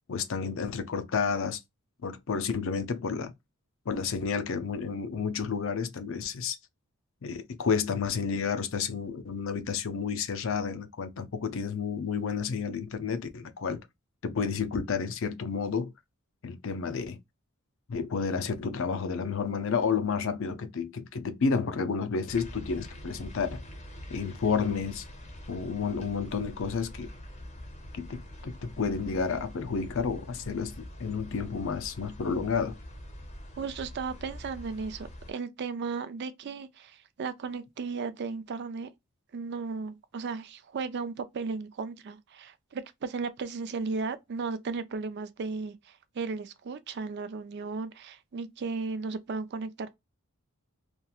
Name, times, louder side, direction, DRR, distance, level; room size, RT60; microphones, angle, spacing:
voice 1, 0.1-1.6 2.0-3.3 3.9-6.6 7.2-13.8 14.2-15.9 16.4-17.2 17.9-23.6 24.1-25.0 25.5-27.1 27.9-30.7 31.0-32.8, left 5 dB, 60° left, 0.5 m, -31 dB
sound 1, 22.3-35.3, equal, 30° left, 0.7 m, -44 dB
voice 2, 33.6-38.9 39.3-49.9, right 4 dB, 50° right, 0.4 m, -35 dB
2.9 x 2.4 x 2.3 m
head